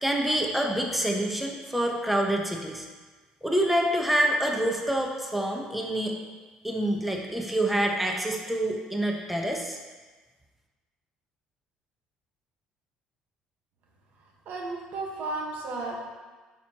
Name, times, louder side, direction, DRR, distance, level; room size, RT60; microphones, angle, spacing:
voice 1, 0.0-2.9 3.4-6.2 6.6-9.8, right 1 dB, 5° right, 1 dB, 1.2 m, -27 dB
voice 2, 14.4-16.0, right 2 dB, 65° right, 0 dB, 1.5 m, -33 dB
9.0 x 6.3 x 3.1 m, 1.3 s
supercardioid pair, 75°, 3 cm